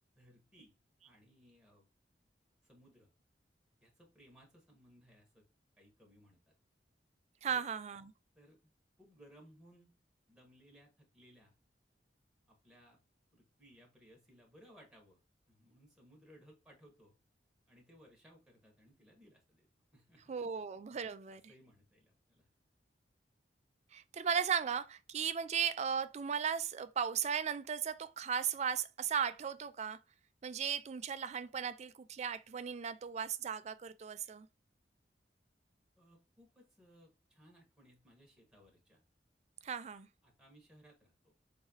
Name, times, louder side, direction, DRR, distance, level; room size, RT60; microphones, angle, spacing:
voice 1, 0.1-0.7 1.0-1.9 2.6-3.1 3.8-5.5 5.8-6.5 7.4-7.6 8.3-8.7 9.0-9.9 10.3-11.5 12.5-13.0 13.3-15.2 15.5-17.1 17.7-19.7 19.9-20.4 21.3-22.5 36.0-39.0 40.2-41.3, equal, 5° right, 1.2 m, -63 dB
voice 2, 7.4-8.1 20.3-21.4 23.9-30.0 30.4-34.5 39.6-40.1, right 7 dB, 40° right, 0.4 m, -36 dB
3.6 x 3.0 x 2.9 m
head